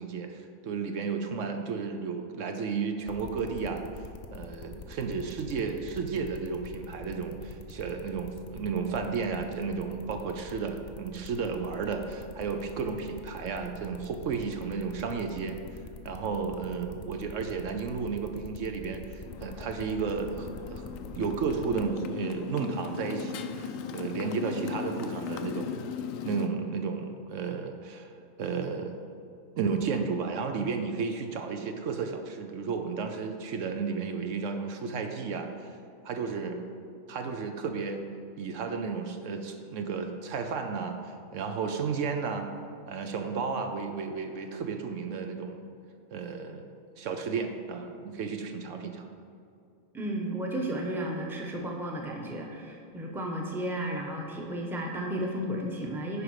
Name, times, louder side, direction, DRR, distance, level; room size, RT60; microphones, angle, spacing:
voice 1, 0.0-3.8 4.3-15.6 16.0-20.8 21.1-25.8 26.2-28.1 28.4-29.0 29.5-35.5 36.0-36.6 37.1-38.0 38.4-41.0 41.3-42.5 42.9-45.6 46.1-46.7 47.0-49.1, right 5 dB, 70° right, 5 dB, 1.0 m, -33 dB
sound 1, 3.1-21.9, left 4 dB, 55° left, 0.9 m, -45 dB
Motorcycle, 19.3-26.5, left 7 dB, 80° left, 1.0 m, -38 dB
voice 2, 49.9-56.2, right 1 dB, ahead, 0 dB, 0.8 m, -33 dB
9.9 x 5.0 x 4.8 m, 2.5 s
omnidirectional pair, 1.4 m